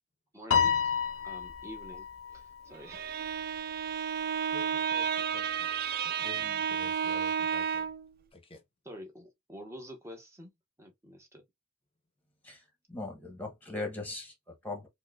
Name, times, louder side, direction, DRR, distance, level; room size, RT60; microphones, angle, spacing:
voice 1, 0.3-0.7 1.2-2.1 2.3-3.1 8.8-10.5 10.8-11.4, equal, 15° right, 0.9 m, -47 dB
Piano, 0.5-3.0, left 7 dB, 85° left, 0.5 m, -30 dB
Bowed string instrument, 2.7-8.1, right 7 dB, 45° right, 0.4 m, -32 dB
voice 2, 4.5-5.7 6.0-7.9 8.3-8.6, left 3 dB, 30° left, 0.7 m, -50 dB
voice 3, 12.9-14.9, left 2 dB, 10° left, 1.0 m, -39 dB
4.5 x 2.1 x 2.3 m
head